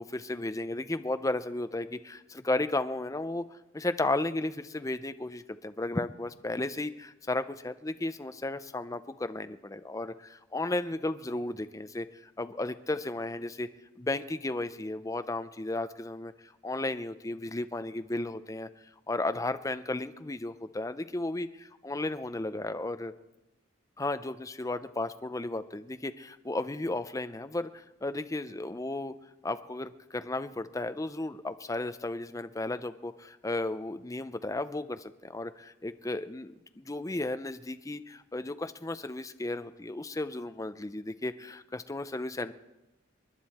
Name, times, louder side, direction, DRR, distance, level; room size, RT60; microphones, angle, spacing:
voice 1, 0.0-13.7 14.0-18.7 19.1-23.1 24.0-29.1 29.4-42.5, left 2 dB, 15° left, 10 dB, 0.5 m, -34 dB
28.5 x 10.5 x 4.2 m, 1.0 s
head